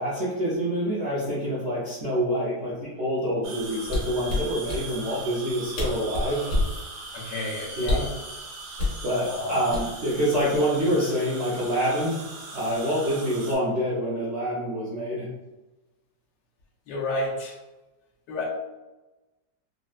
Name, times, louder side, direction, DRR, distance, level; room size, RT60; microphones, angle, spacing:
voice 1, 0.0-6.4 7.8-8.1 9.0-12.2 12.5-15.3, equal, 65° right, -8 dB, 0.6 m, -26 dB
sound 1, 3.4-13.5, right 3 dB, 85° right, 1.7 m, -40 dB
sound 2, 3.8-4.8 5.5-5.6 5.7-6.8 7.8-8.2 8.8-9.0 9.7-10.2 10.5-10.8, left 2 dB, 55° left, 0.9 m, -27 dB
voice 2, 7.1-8.1 9.3-9.6 16.9-17.6 18.3-18.4, left 2 dB, 75° left, -2 dB, 1.2 m, -31 dB
4.0 x 2.1 x 2.3 m, 1.1 s
omnidirectional pair, 2.0 m